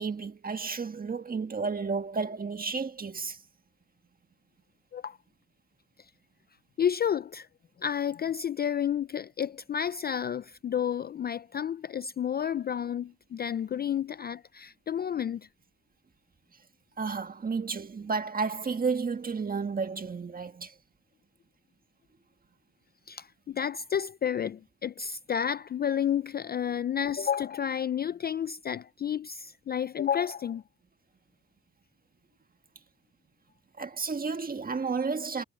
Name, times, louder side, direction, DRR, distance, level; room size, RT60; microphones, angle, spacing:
voice 1, 0.0-3.4 17.0-20.7 33.8-35.4, right 4 dB, 30° right, 1.6 m, -32 dB
voice 2, 6.8-7.5 7.8-15.5 23.1-30.6, left 8 dB, 35° left, 0.4 m, -31 dB
cardioid pair, 90°, 30 cm